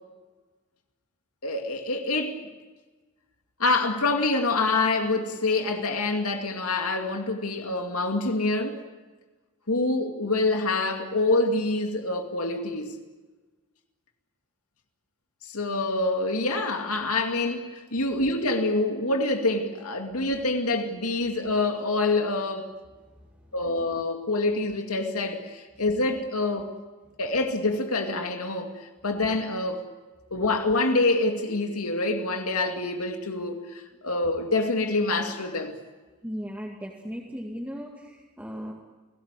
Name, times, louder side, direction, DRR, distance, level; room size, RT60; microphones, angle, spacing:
voice 1, 1.4-2.4 3.6-8.8 9.7-12.9 15.5-22.7 23.5-26.7 27.2-29.8 30.3-35.7, left 2 dB, 90° left, 2.4 m, -26 dB
voice 2, 23.1-23.5 36.2-38.7, equal, 10° right, 2.3 m, -37 dB
29.5 x 17.5 x 8.3 m
head